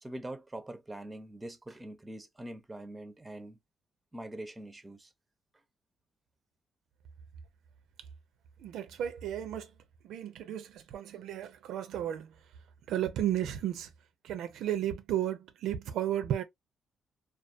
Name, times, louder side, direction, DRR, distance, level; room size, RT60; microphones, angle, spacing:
voice 1, 0.0-3.6 4.1-5.1, right 1 dB, 15° right, 0.5 m, -43 dB
voice 2, 8.6-9.7 10.0-12.3 12.9-13.9 14.2-16.4, right 11 dB, 80° right, 0.4 m, -33 dB
2.3 x 2.3 x 2.4 m
cardioid pair, 90°, 0 cm